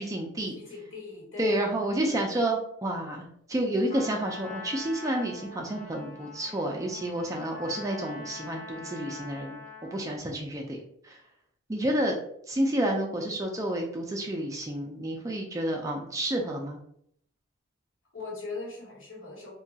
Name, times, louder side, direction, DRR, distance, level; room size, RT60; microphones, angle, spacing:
voice 1, 0.0-0.5 1.4-9.6 9.9-10.8 11.0-11.2 11.7-12.1 12.5-16.8, right 1 dB, 15° right, 1 dB, 0.3 m, -30 dB
voice 2, 0.5-1.6 18.1-19.5, left 3 dB, 70° left, -3 dB, 1.0 m, -40 dB
Trumpet, 3.9-10.1, left 3 dB, 35° left, 0.8 m, -43 dB
2.8 x 2.2 x 2.7 m, 0.69 s
head